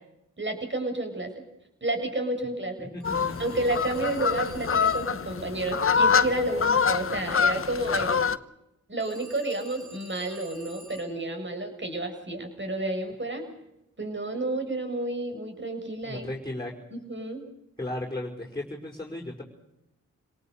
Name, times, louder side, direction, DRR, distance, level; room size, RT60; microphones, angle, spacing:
voice 1, 0.4-1.3 1.8-2.9 3.4-8.3 8.9-13.4 14.0-16.2 16.9-17.4, right 2 dB, 35° right, 5 dB, 7.0 m, -31 dB
voice 2, 2.8-3.4 16.0-16.7 17.8-19.4, left 1 dB, 10° left, 0 dB, 5.4 m, -35 dB
sound 1, 3.0-8.4, left 6 dB, 40° left, 1.0 m, -25 dB
Telephone, 3.0-5.3 9.0-11.2, right 2 dB, 55° right, 4.4 m, -50 dB
27.5 x 18.5 x 6.7 m, 0.85 s
cardioid pair, 45°, 34 cm